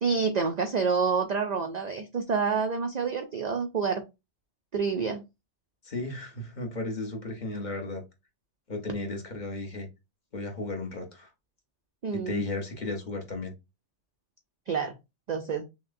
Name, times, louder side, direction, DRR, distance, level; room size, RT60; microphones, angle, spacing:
voice 1, 0.0-4.0 4.7-5.2 12.0-12.4 14.7-14.9 15.3-15.6, right 5 dB, 65° right, 6 dB, 0.4 m, -28 dB
voice 2, 5.8-8.0 8.7-9.9 10.3-11.3 12.1-13.5, left 2 dB, 40° left, 3 dB, 1.0 m, -34 dB
5.8 x 2.1 x 2.5 m, 0.24 s
omnidirectional pair, 1.2 m